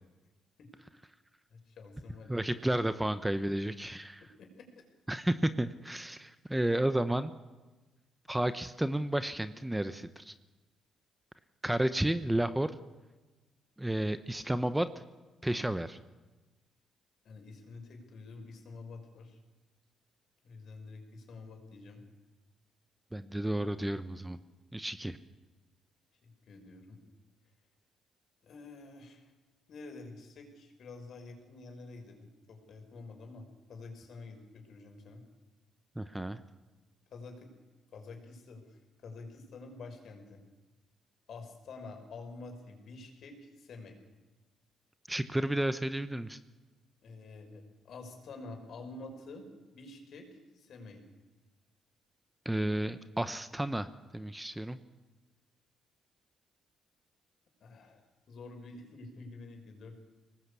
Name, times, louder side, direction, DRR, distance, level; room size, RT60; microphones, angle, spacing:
voice 1, 1.5-2.9 4.4-4.6 17.2-19.4 20.4-22.0 26.2-27.0 28.4-29.2 29.7-33.4 33.7-35.2 37.1-37.5 37.9-40.4 41.3-44.0 47.0-49.5 49.7-51.0 57.6-58.0 58.3-60.0, left 3 dB, 65° left, 4 dB, 5.6 m, -48 dB
voice 2, 2.3-4.2 5.1-7.3 8.3-10.3 11.6-12.7 13.8-14.9 15.4-16.0 23.1-24.4 24.7-25.2 36.0-36.4 45.1-46.4 52.4-54.8, right 1 dB, 10° right, 12 dB, 1.0 m, -32 dB
23.5 x 19.0 x 8.5 m, 1.2 s
cardioid pair, 90°, 0 cm